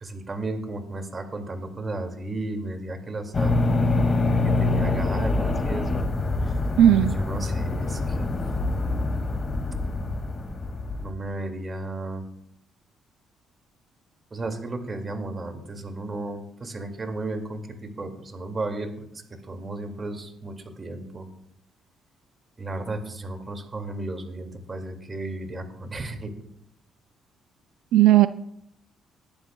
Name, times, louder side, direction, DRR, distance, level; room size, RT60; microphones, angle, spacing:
voice 1, 0.0-3.5 4.2-6.0 6.4-6.5 6.9-8.4 11.0-12.2 14.3-21.3 22.6-26.3, right 2 dB, 30° right, 5 dB, 2.2 m, -34 dB
sound 1, 3.3-11.1, left 2 dB, 35° left, 2.1 m, -25 dB
voice 2, 6.8-7.1 27.9-28.3, right 12 dB, 90° right, 13 dB, 0.3 m, -15 dB
20.5 x 11.5 x 2.3 m, 0.76 s
cardioid pair, 90°, 0 cm